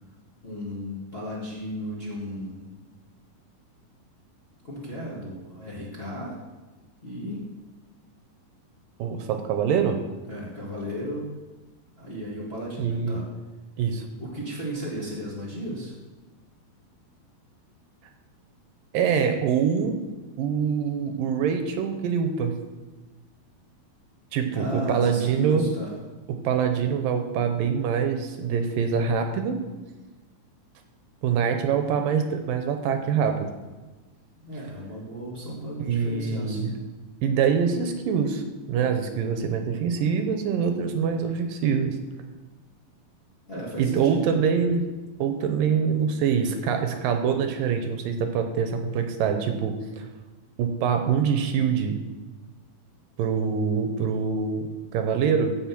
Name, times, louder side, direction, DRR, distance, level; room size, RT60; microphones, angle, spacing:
voice 1, 0.4-2.7 4.6-6.4 7.0-7.5 10.3-11.3 12.0-13.2 14.2-15.9 24.5-25.9 34.4-36.8 43.5-44.4, equal, 25° left, -5 dB, 1.6 m, -34 dB
voice 2, 9.0-10.0 12.8-13.2 13.8-14.1 18.9-20.0 20.4-22.5 24.3-25.7 26.3-29.6 31.2-33.5 35.9-36.7 37.2-38.4 38.7-42.0 43.8-44.8 45.2-50.1 50.6-52.0 53.2-55.6, right 6 dB, 75° right, 6 dB, 2.5 m, -24 dB
15.0 x 5.4 x 6.0 m, 1.2 s
omnidirectional pair, 4.2 m